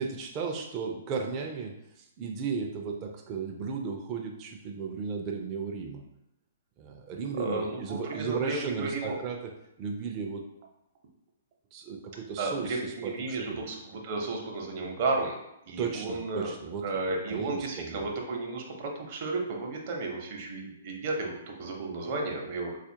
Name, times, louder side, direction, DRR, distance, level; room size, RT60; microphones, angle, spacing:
voice 1, 0.0-1.7 2.0-6.0 6.8-9.5 9.8-10.4 11.7-13.6 15.8-16.9 17.3-18.1, right 5 dB, 30° right, 1 dB, 0.4 m, -35 dB
voice 2, 7.3-9.2 12.4-15.4 15.7-16.5 16.8-22.8, right 3 dB, 50° right, 1 dB, 0.8 m, -33 dB
4.2 x 2.4 x 2.7 m, 0.84 s
hypercardioid pair, 130°, 0 cm